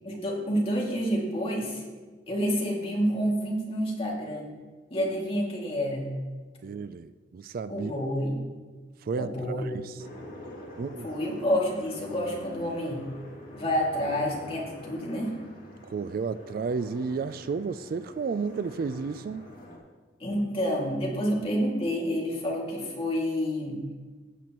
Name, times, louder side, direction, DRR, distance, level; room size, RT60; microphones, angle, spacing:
voice 1, 0.1-1.8 2.3-4.5 4.9-6.1 7.7-8.4 9.2-9.7 11.0-13.1 13.5-15.3 20.2-23.8, equal, 30° left, -2 dB, 2.2 m, -28 dB
voice 2, 6.6-7.9 9.0-10.0 10.7-11.1 15.8-19.5 20.3-20.4, right 5 dB, 50° right, 13 dB, 0.3 m, -32 dB
sound 1, 10.0-19.8, left 1 dB, 55° left, 2.2 m, -46 dB
15.0 x 8.1 x 3.0 m, 1.4 s
head